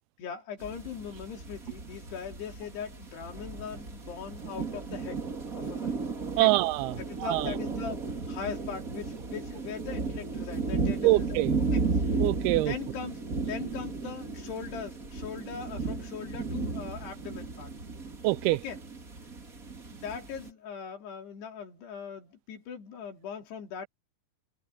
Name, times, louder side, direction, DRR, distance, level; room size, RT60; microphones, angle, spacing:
voice 1, 0.2-5.2 5.6-6.0 6.4-6.5 7.0-11.4 11.7-12.2 12.7-17.7 18.6-18.8 19.2-19.3 19.9-23.9, left 7 dB, 90° left, 5.3 m, -40 dB
sound 1, 0.6-20.5, right 4 dB, 25° right, 2.4 m, -34 dB
voice 2, 6.4-7.5 11.0-11.5 12.2-12.7 18.2-18.6, right 19 dB, 85° right, 2.5 m, -25 dB
omnidirectional pair, 4.6 m